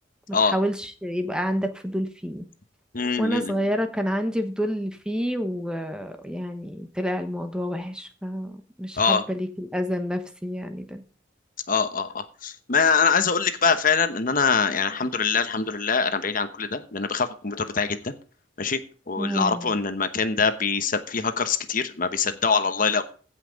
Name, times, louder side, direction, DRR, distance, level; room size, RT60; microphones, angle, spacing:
voice 1, 0.3-2.4 3.2-11.0 19.2-19.7, equal, 5° right, 7 dB, 1.1 m, -29 dB
voice 2, 2.9-3.5 9.0-9.2 11.7-18.1 18.6-18.8 19.1-23.0, left 5 dB, 45° left, 10 dB, 1.0 m, -24 dB
16.5 x 5.7 x 5.2 m, 0.38 s
head